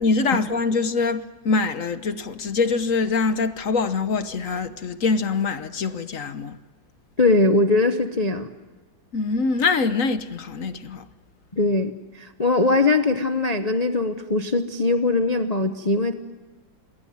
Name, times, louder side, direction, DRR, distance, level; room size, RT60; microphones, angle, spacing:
voice 1, 0.0-6.6 9.1-11.0, left 4 dB, 50° left, 1.2 m, -24 dB
voice 2, 7.2-8.5 11.5-16.1, left 2 dB, 30° left, 0.7 m, -21 dB
27.0 x 22.5 x 9.4 m
omnidirectional pair, 2.1 m